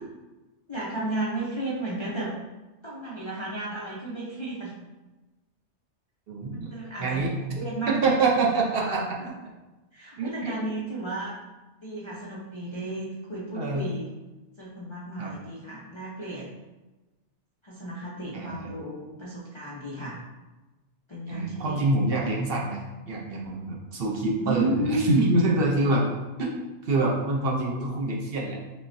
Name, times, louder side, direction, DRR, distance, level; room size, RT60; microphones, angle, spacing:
voice 1, 0.7-2.3 2.8-4.7 6.5-7.3 7.6-8.0 8.7-9.3 9.9-11.4 11.8-14.1 14.6-16.5 17.6-20.2 21.1-21.9 24.4-25.3, right 2 dB, 45° left, -7 dB, 0.4 m, -32 dB
voice 2, 6.3-6.7 7.0-9.2 10.2-10.5 13.5-13.8 15.2-15.3 18.3-18.7 21.3-22.8 23.1-26.1 26.4-26.5 26.8-28.6, right 2 dB, 60° right, -2 dB, 0.8 m, -26 dB
5.2 x 2.1 x 2.6 m, 1.1 s
omnidirectional pair, 1.2 m